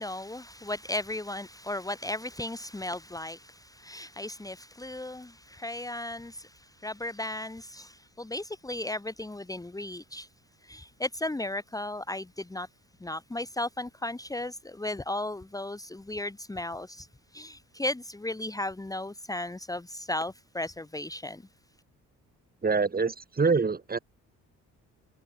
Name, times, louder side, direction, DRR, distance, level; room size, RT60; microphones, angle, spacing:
voice 1, 0.0-10.3 10.6-12.7 13.0-17.1 17.3-21.4, left 1 dB, 10° left, 1.7 m, -35 dB
voice 2, 22.6-24.0, right 4 dB, 30° right, 4.4 m, -25 dB
cardioid pair, 90°, 30 cm